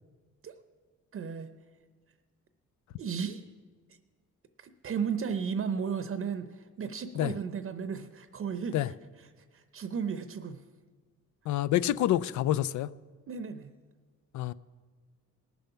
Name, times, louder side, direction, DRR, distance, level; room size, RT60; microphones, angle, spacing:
voice 1, 1.1-1.5 3.0-3.4 4.6-9.3 9.5-10.6 13.3-13.7, right 6 dB, 45° right, 0.7 m, -35 dB
voice 2, 11.5-12.9 14.3-14.5, left 13 dB, 70° left, 0.5 m, -27 dB
19.0 x 7.0 x 5.7 m
cardioid pair, 90°, 30 cm